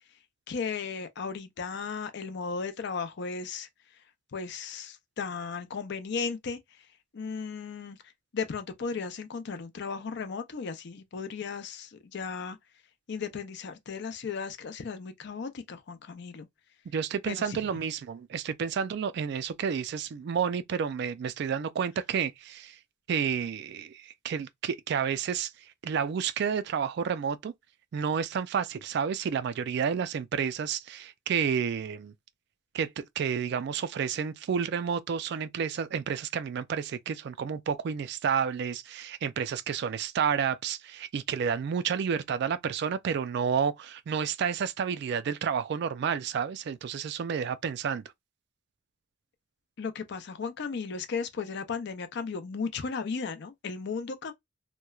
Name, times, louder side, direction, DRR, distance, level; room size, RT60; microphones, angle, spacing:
voice 1, 0.5-3.7 4.3-6.6 7.1-8.0 8.3-12.6 13.1-16.5 17.3-17.6 49.8-54.3, left 5 dB, 60° left, 0.5 m, -35 dB
voice 2, 16.9-22.8 23.1-25.5 25.8-27.5 27.9-32.1 32.7-48.0, right 7 dB, 60° right, 0.3 m, -30 dB
2.9 x 2.1 x 2.3 m
head